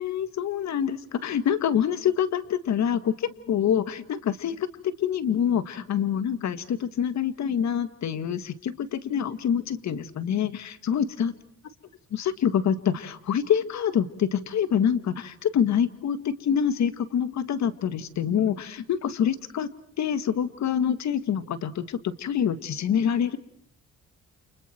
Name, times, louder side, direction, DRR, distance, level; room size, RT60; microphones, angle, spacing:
voice 1, 0.0-11.3 12.1-19.7 20.0-23.4, left 8 dB, 65° left, 12 dB, 2.0 m, -26 dB
29.5 x 29.5 x 4.5 m, 0.63 s
cardioid pair, 90°, 30 cm